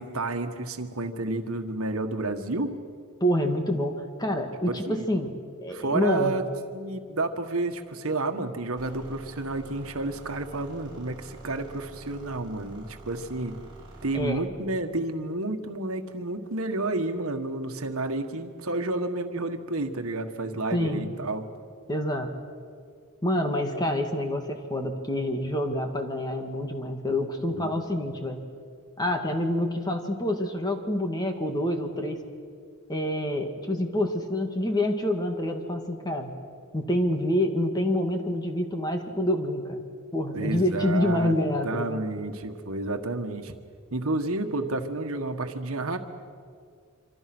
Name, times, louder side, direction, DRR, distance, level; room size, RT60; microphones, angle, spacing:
voice 1, 0.0-2.8 4.7-5.1 5.7-6.4 6.7-13.6 14.0-21.4 27.4-27.8 40.3-41.3 41.6-43.5 43.9-46.0, right 2 dB, 75° right, 6 dB, 1.6 m, -30 dB
voice 2, 3.2-6.4 14.1-14.4 20.7-21.1 21.9-22.3 23.2-28.4 29.0-32.2 32.9-36.3 36.7-39.8 40.1-42.0, left 1 dB, 20° left, 4 dB, 1.9 m, -27 dB
sound 1, 8.8-14.3, right 2 dB, 20° right, 5.6 m, -47 dB
26.0 x 26.0 x 6.2 m, 2.2 s
head